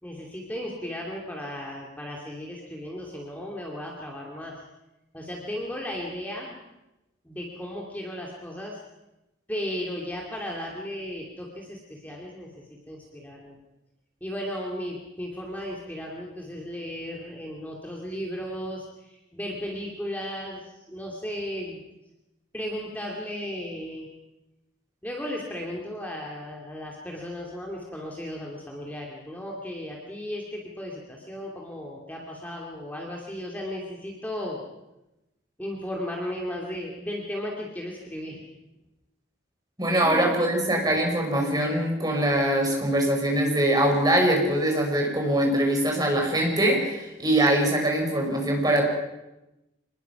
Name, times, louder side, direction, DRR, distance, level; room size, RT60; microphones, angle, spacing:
voice 1, 0.0-4.6 5.1-6.6 7.2-8.8 9.5-12.5 12.9-13.6 14.2-21.8 22.5-24.1 25.0-34.6 35.6-38.4 40.0-40.3, left 1 dB, 10° left, -2 dB, 2.7 m, -35 dB
voice 2, 39.8-48.9, right 1 dB, 20° right, 1 dB, 5.2 m, -23 dB
25.5 x 20.5 x 6.0 m, 0.96 s
head